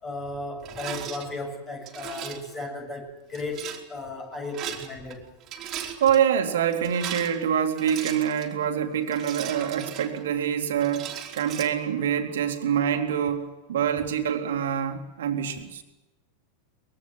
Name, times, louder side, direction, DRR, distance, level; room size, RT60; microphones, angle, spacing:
voice 1, 0.0-5.3, left 2 dB, 20° left, 4 dB, 7.0 m, -35 dB
Rattle, 0.6-1.2 1.9-2.5 3.3-3.8 4.4-5.2 5.4-6.2 6.7-8.5 9.1-10.4 10.8-11.7, right 10 dB, 30° right, 3.5 m, -37 dB
voice 2, 6.0-15.8, right 8 dB, 60° right, 5 dB, 2.8 m, -25 dB
24.0 x 22.0 x 7.9 m, 1.0 s
figure-of-eight pair, 90°, 0 cm